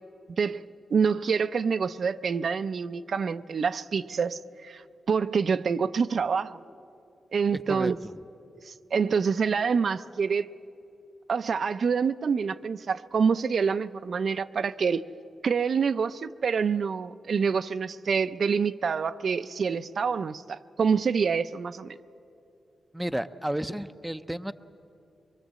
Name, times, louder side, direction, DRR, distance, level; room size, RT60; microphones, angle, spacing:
voice 1, 0.9-6.6 7.3-8.0 8.6-10.5 11.3-15.1 15.4-22.0, right 6 dB, 55° right, 11 dB, 0.5 m, -26 dB
voice 2, 22.9-24.5, right 1 dB, 5° right, 10 dB, 0.5 m, -31 dB
24.0 x 23.0 x 7.5 m, 2.7 s
wide cardioid pair, 120°, 0 cm